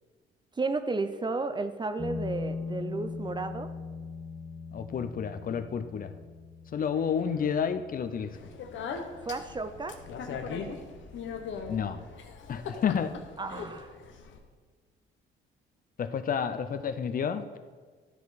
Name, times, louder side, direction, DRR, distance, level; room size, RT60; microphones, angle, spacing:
voice 1, 0.6-3.7 9.2-10.0 13.4-13.9, right 3 dB, 25° right, 10 dB, 0.5 m, -33 dB
sound 1, 2.0-11.0, left 4 dB, 20° left, 1.1 m, -41 dB
voice 2, 4.7-6.1 6.7-8.4 11.7-12.0 12.5-13.1 16.0-17.5, left 7 dB, 45° left, 10 dB, 0.5 m, -30 dB
sound 2, 6.9-11.6, right 2 dB, 80° right, 1.6 m, -58 dB
Speech, 8.3-14.4, left 5 dB, 70° left, 0.9 m, -40 dB
12.0 x 4.6 x 4.1 m, 1.5 s
cardioid pair, 90°, 20 cm